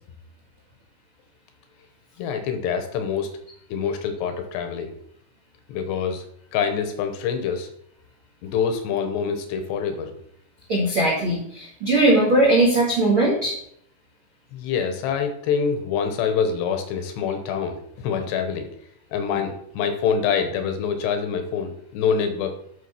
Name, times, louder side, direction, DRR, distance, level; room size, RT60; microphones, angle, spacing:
voice 1, 2.2-3.3 3.7-4.9 5.7-6.3 6.5-7.7 8.4-10.1 14.5-18.7 19.1-22.5, left 6 dB, 75° left, 7 dB, 2.9 m, -25 dB
voice 2, 10.7-13.6, right 1 dB, 55° right, -2 dB, 1.4 m, -19 dB
9.6 x 6.2 x 5.8 m, 0.69 s
omnidirectional pair, 5.4 m